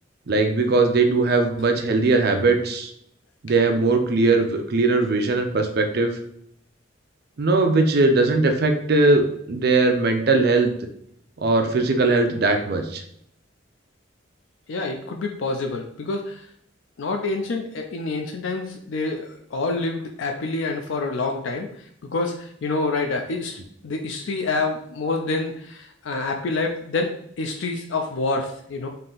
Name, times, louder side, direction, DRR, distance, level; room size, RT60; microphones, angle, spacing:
voice 1, 0.3-2.9 3.4-6.2 7.4-10.7 11.4-13.0, right 3 dB, 55° right, 5 dB, 0.5 m, -20 dB
voice 2, 14.7-16.5 17.0-21.7 22.0-28.9, left 3 dB, 75° left, 3 dB, 0.4 m, -27 dB
3.7 x 2.7 x 3.9 m, 0.68 s
head